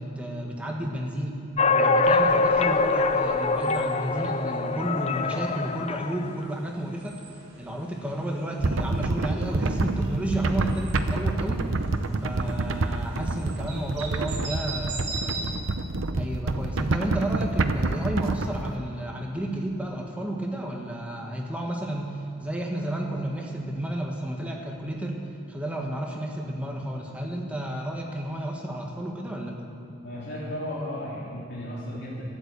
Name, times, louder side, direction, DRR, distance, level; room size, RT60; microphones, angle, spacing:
voice 1, 0.0-7.2 7.6-11.7 12.2-15.5 16.2-25.2 25.5-29.7, right 1 dB, 5° right, 0 dB, 1.4 m, -32 dB
sound 1, 1.6-6.4, left 3 dB, 30° left, 0.4 m, -24 dB
sound 2, 2.0-15.4, right 3 dB, 55° right, 2.7 m, -43 dB
sound 3, 8.6-18.7, right 2 dB, 80° right, 0.8 m, -27 dB
voice 2, 30.0-32.2, equal, 55° left, -6 dB, 2.4 m, -34 dB
12.5 x 11.0 x 8.2 m, 2.6 s
head